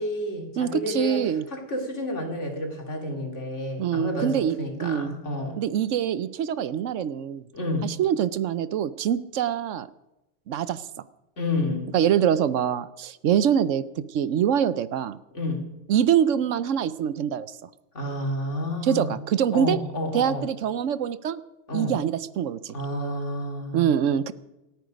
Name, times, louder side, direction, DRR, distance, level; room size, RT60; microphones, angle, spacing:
voice 1, 0.0-5.6 7.5-7.9 11.4-11.9 15.3-15.7 17.9-19.1 19.5-20.5 21.7-22.0 22.7-23.9, left 1 dB, 65° left, 2 dB, 3.1 m, -30 dB
voice 2, 0.6-1.4 3.8-5.1 5.6-7.4 7.8-9.9 10.5-10.8 11.9-15.2 15.9-17.5 18.8-19.8 20.1-21.4 21.7-22.8 23.7-24.3, right 9 dB, 75° right, 16 dB, 1.0 m, -24 dB
27.5 x 9.3 x 5.1 m, 0.98 s
omnidirectional pair, 1.3 m